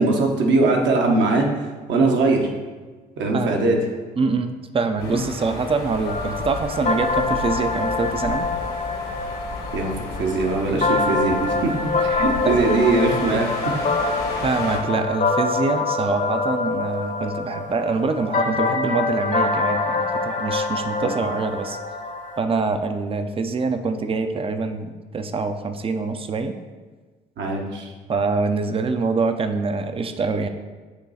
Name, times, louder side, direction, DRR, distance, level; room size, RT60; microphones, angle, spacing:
voice 1, 0.0-1.5 1.9-2.5 3.2-3.8 5.0-5.2 9.7-13.7 21.0-21.1 27.4-27.9, right 3 dB, 65° right, 1 dB, 1.1 m, -21 dB
voice 2, 4.2-8.5 12.4-12.5 14.4-21.8 22.4-26.5 28.1-30.5, right 4 dB, 25° right, 8 dB, 0.6 m, -25 dB
sound 1, 5.0-14.8, left 3 dB, 70° left, 1.5 m, -34 dB
sound 2, 6.1-22.4, left 3 dB, 40° left, 0.9 m, -25 dB
8.3 x 3.1 x 4.2 m, 1.4 s
hypercardioid pair, 60°, 20 cm